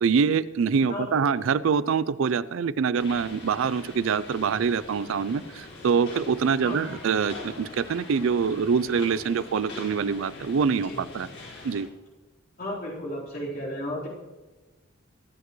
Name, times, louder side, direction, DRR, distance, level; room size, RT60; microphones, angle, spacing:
voice 1, 0.0-11.3 11.6-11.9, right 6 dB, 65° right, 17 dB, 0.4 m, -25 dB
voice 2, 0.9-1.2 6.6-6.8 10.8-11.0 12.6-14.1, left 1 dB, 45° left, -6 dB, 4.0 m, -33 dB
sound 1, 2.9-11.8, left 3 dB, 70° left, 5.0 m, -43 dB
23.5 x 8.2 x 3.1 m, 1.2 s
head